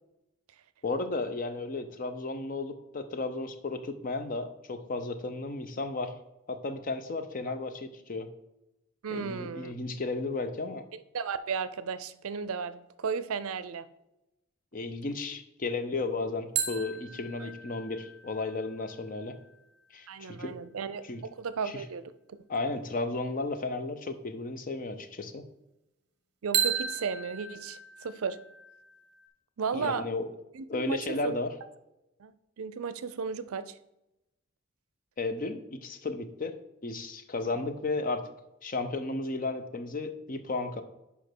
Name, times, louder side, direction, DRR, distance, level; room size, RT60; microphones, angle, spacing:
voice 1, 0.8-6.1 6.5-8.3 9.1-10.9 14.7-19.4 19.9-20.6 21.1-21.2 21.6-21.8 22.5-25.4 29.7-30.2 30.7-31.5 35.2-36.6 36.8-38.3 38.6-40.8, left 3 dB, 40° left, 9 dB, 0.6 m, -34 dB
voice 2, 9.0-9.7 10.9-13.9 17.4-17.5 20.1-21.0 21.4-22.0 22.3-22.4 26.4-28.4 29.6-30.0 30.5-31.3 32.2-33.8, right 5 dB, 80° right, 14 dB, 0.5 m, -34 dB
sound 1, 16.6-20.1 26.5-29.3, right 8 dB, 50° right, 1.0 m, -35 dB
5.1 x 5.0 x 6.0 m, 0.93 s
head